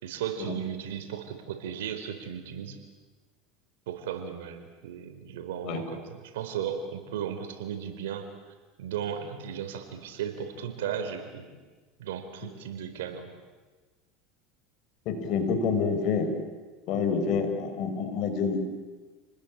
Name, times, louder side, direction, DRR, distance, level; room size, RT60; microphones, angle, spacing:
voice 1, 0.0-2.8 3.9-8.3 8.8-11.5 12.0-13.3, right 8 dB, 85° right, 7 dB, 4.2 m, -35 dB
voice 2, 15.1-16.3 16.9-18.6, left 5 dB, 55° left, 7 dB, 5.3 m, -27 dB
29.5 x 20.5 x 8.8 m, 1.3 s
supercardioid pair, 115°, 0 cm